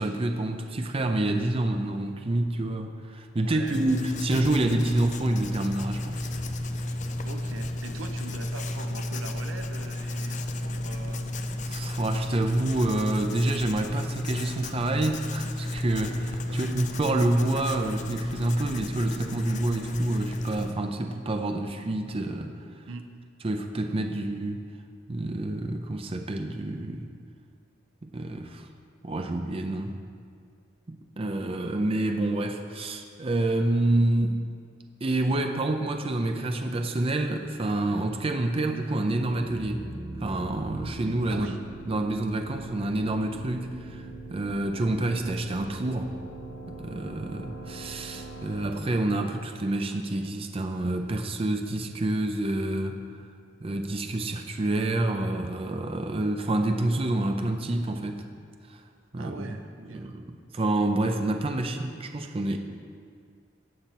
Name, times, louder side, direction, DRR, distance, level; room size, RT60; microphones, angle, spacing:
voice 1, 0.0-6.3 11.7-22.6 23.4-24.7 25.1-27.1 28.0-28.7 29.0-30.0 30.9-34.5 35.0-39.9 40.2-41.5 41.9-44.0 44.3-46.1 46.7-53.0 53.6-58.2 58.7-58.8 59.1-59.6 59.9-60.3 60.5-62.6, right 2 dB, 30° right, 5 dB, 0.5 m, -28 dB
voice 2, 3.4-3.8 7.2-11.3 12.2-12.4 16.5-16.8 22.9-23.1 41.3-41.6 59.1-60.1, right 3 dB, 85° right, 7 dB, 0.7 m, -41 dB
Writing, 3.7-20.7, left 1 dB, 40° left, 0.5 m, -32 dB
sound 1, 38.9-50.5, right 2 dB, 85° left, 2.3 m, -42 dB
16.0 x 5.7 x 4.4 m, 2.1 s
head